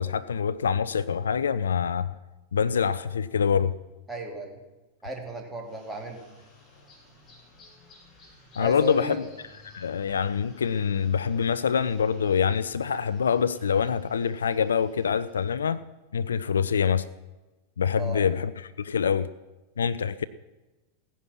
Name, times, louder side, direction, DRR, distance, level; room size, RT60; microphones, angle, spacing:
voice 1, 0.0-2.1 2.5-3.7 8.6-9.2 9.6-15.8 16.1-17.1 17.8-18.5 18.8-19.3 19.8-20.2, left 7 dB, 70° left, 0.4 m, -25 dB
voice 2, 4.1-4.6 5.0-6.2 8.6-9.2 18.0-18.2, right 1 dB, 10° right, 2.9 m, -35 dB
sound 1, 5.6-15.5, left 3 dB, 25° left, 5.3 m, -54 dB
16.5 x 10.0 x 5.9 m
figure-of-eight pair, 90°, 0 cm